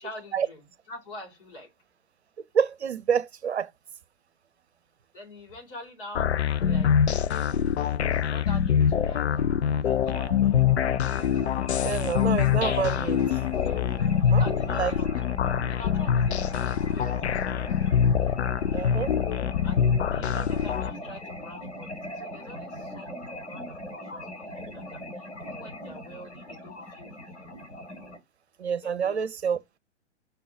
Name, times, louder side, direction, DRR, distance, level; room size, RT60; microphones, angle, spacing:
voice 1, 0.0-1.7 5.1-6.3 6.6-7.0 7.2-10.4 14.2-17.7 18.7-18.9 19.6-27.5 28.8-29.2, left 1 dB, 45° left, 4.0 m, -46 dB
voice 2, 2.5-3.7 11.2-11.3 11.8-13.2 14.3-14.5 14.7-14.9 18.7-19.1 28.6-29.6, right 7 dB, 65° right, 0.7 m, -27 dB
sound 1, 6.1-20.9, left 8 dB, 65° left, 0.5 m, -24 dB
sound 2, 10.1-28.2, left 1 dB, 85° left, 3.0 m, -40 dB
5.7 x 3.9 x 4.8 m
figure-of-eight pair, 110°, 36 cm